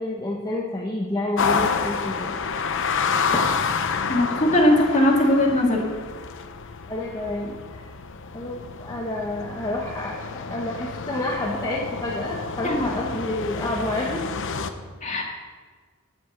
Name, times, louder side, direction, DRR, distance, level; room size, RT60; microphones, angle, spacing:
voice 1, 0.0-2.4 3.3-3.5 6.9-7.9 8.3-14.2, left 1 dB, 20° left, -2 dB, 1.1 m, -29 dB
sound 1, 1.4-14.7, left 5 dB, 60° left, 0.8 m, -29 dB
voice 2, 4.1-5.9 12.6-12.9 15.0-15.2, left 1 dB, 35° left, 0 dB, 2.2 m, -19 dB
9.9 x 8.6 x 7.3 m, 1.5 s
head